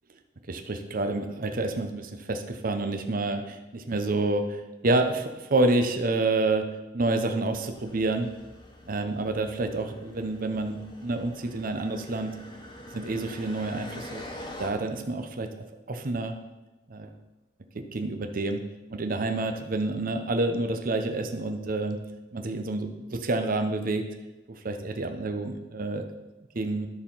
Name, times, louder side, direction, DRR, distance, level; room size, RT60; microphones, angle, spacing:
voice 1, 0.5-6.7 6.9-8.3 8.9-12.3 12.9-14.2 14.6-15.5 15.9-16.4 16.9-17.1 17.7-18.6 18.9-22.0 22.3-24.0 24.6-26.0 26.5-26.9, right 2 dB, 50° right, 6 dB, 0.8 m, -28 dB
sound 1, 7.7-14.7, left 1 dB, 25° left, 1.3 m, -45 dB
12.5 x 4.5 x 5.5 m, 1.1 s
head